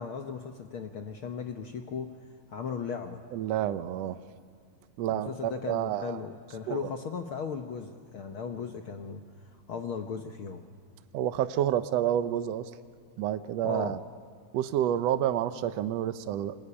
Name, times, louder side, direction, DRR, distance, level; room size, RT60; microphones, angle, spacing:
voice 1, 0.0-2.2 2.5-3.2 5.1-10.6 13.6-14.0, left 6 dB, 65° left, 5 dB, 1.3 m, -37 dB
voice 2, 3.3-4.2 5.0-6.2 6.7-6.8 11.1-12.7 13.2-14.0 14.5-16.6, right 11 dB, 70° right, 11 dB, 1.6 m, -29 dB
24.0 x 23.0 x 9.9 m, 2.2 s
omnidirectional pair, 3.8 m